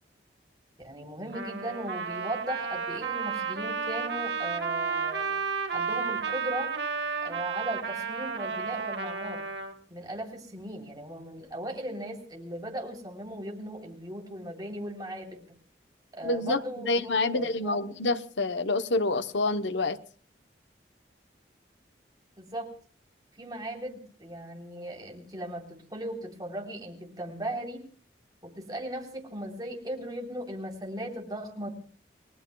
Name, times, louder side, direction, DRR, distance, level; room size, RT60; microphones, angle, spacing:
voice 1, 0.8-5.3 5.7-6.7 7.2-9.4 9.9-15.5 16.1-17.8 22.4-22.7 23.3-27.8 28.4-31.7, right 1 dB, 20° right, 3.4 m, -37 dB
Trumpet, 1.3-9.7, right 5 dB, 70° right, 1.7 m, -32 dB
voice 2, 16.2-20.0, left 2 dB, 80° left, 0.9 m, -27 dB
30.0 x 19.0 x 2.3 m
head